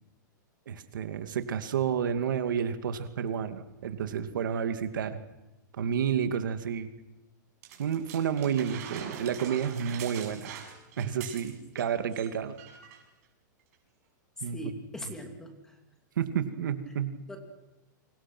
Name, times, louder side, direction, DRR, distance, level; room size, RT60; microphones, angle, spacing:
voice 1, 0.7-5.2 5.7-6.9 7.8-10.5 11.0-12.6 14.4-14.6 16.2-17.1, right 8 dB, 90° right, 8 dB, 2.4 m, -30 dB
sound 1, 7.6-11.8 12.1-12.3 12.6-13.0 13.7-13.8, right 8 dB, 50° right, 7.0 m, -43 dB
voice 2, 14.4-15.8 17.3-17.4, left 1 dB, 5° left, 4 dB, 2.9 m, -40 dB
28.5 x 25.0 x 6.2 m, 1.0 s
supercardioid pair, 165°, 10 cm